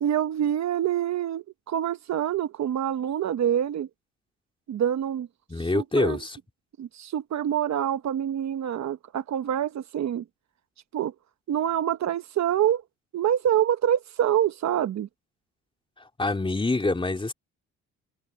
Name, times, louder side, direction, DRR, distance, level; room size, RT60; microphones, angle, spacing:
voice 1, 0.0-3.9 4.7-5.3 5.6-6.2 6.8-10.2 10.9-11.1 11.5-12.8 13.1-15.1, right 10 dB, 65° right, 1.2 m, -26 dB
voice 2, 5.5-6.4 16.0-17.3, left 2 dB, 15° left, 3.1 m, -26 dB
cardioid pair, 90°, 30 cm